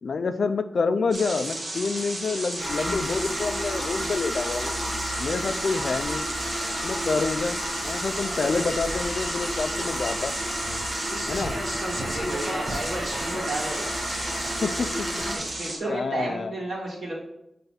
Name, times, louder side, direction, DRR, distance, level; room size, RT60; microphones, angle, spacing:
voice 1, 0.0-4.7 5.2-6.3 6.8-10.3 11.3-11.5 14.6-15.2 15.9-16.5, left 4 dB, 60° left, 9 dB, 0.4 m, -28 dB
sound 1, 1.1-15.8, right 1 dB, 45° right, 1.3 m, -33 dB
sound 2, 2.6-15.4, equal, 20° right, 2.1 m, -32 dB
voice 2, 11.9-13.9 15.2-17.1, right 2 dB, 70° right, -5 dB, 2.1 m, -33 dB
7.1 x 3.3 x 4.1 m, 0.84 s
wide cardioid pair, 150°, 0 cm